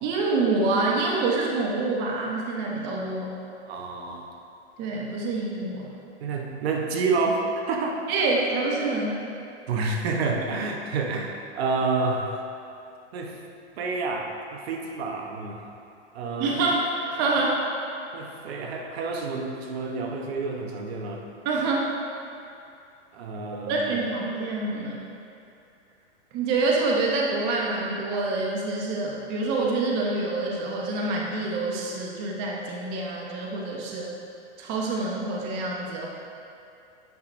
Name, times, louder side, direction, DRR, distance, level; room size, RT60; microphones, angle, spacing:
voice 1, 0.0-3.4 4.8-6.0 8.1-9.2 16.4-17.6 21.4-21.9 23.7-25.0 26.3-34.1 34.6-36.1, right 3 dB, 30° right, -2 dB, 0.8 m, -26 dB
voice 2, 3.7-4.3 6.2-8.0 9.7-12.4 13.1-13.4 13.8-15.6 16.1-16.6 18.1-21.2 23.1-24.0, right 3 dB, 60° right, 1 dB, 1.0 m, -29 dB
9.3 x 5.7 x 2.6 m, 2.5 s
hypercardioid pair, 135°, 35 cm